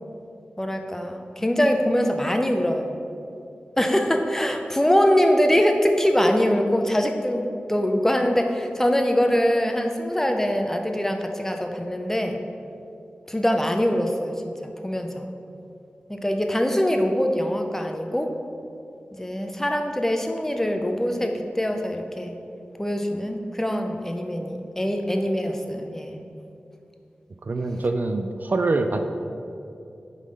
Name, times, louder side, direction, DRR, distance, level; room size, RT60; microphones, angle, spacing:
voice 1, 0.6-3.0 3.8-12.4 13.3-14.4 14.8-15.3 16.1-18.3 19.1-22.3 22.8-26.2, equal, 10° left, 4 dB, 0.6 m, -23 dB
voice 2, 27.4-29.0, right 3 dB, 55° right, 6 dB, 0.4 m, -24 dB
8.3 x 3.8 x 5.2 m, 2.7 s
wide cardioid pair, 75°, 4 cm